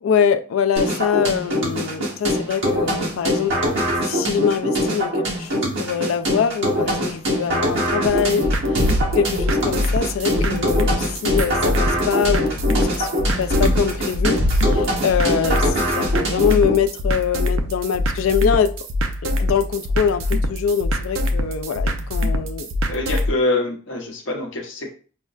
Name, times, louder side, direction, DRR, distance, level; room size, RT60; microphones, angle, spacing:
voice 1, 0.0-3.5 4.1-8.5 8.9-13.1 13.4-18.7 19.4-22.7, left 7 dB, 85° left, 0.3 m, -23 dB
sound 1, 0.8-16.8, equal, 65° right, 1.4 m, -23 dB
sound 2, 8.1-23.3, left 1 dB, 85° right, 0.5 m, -24 dB
voice 2, 22.9-24.9, left 2 dB, 65° left, 0.8 m, -25 dB
5.4 x 2.1 x 2.4 m
head